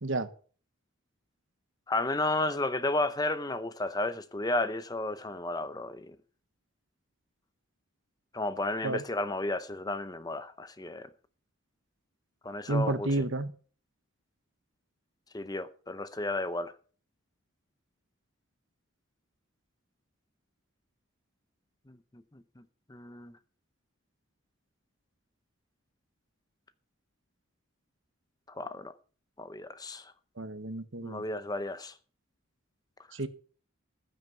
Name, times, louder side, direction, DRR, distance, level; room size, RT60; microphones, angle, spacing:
voice 1, 1.9-6.2 8.3-11.1 12.4-13.1 15.3-16.7 21.9-22.0 22.3-22.6 22.9-23.3 28.5-28.9 29.4-30.1 31.0-31.9, left 2 dB, 20° left, 0.7 m, -33 dB
voice 2, 12.7-13.5 30.4-31.2 33.1-33.3, right 2 dB, 60° right, 1.2 m, -31 dB
14.5 x 9.1 x 5.6 m
head